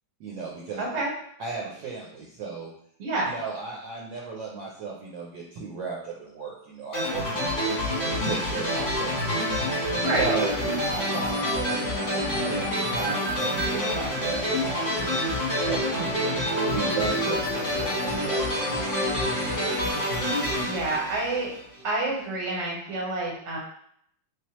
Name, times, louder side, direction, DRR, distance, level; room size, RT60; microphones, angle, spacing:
voice 1, 0.2-0.8 1.4-2.7 3.2-7.6 8.1-9.7 10.2-10.6 10.9-15.3 15.6-16.2 16.6-17.9, right 5 dB, 70° right, -3 dB, 1.2 m, -35 dB
voice 2, 0.8-1.1 3.0-3.3 10.0-10.3 20.7-21.5 21.8-23.6, right 2 dB, 45° right, -3 dB, 1.0 m, -28 dB
sound 1, 6.9-21.8, equal, 35° left, 1.0 m, -27 dB
3.3 x 3.0 x 3.0 m, 0.67 s
omnidirectional pair, 2.3 m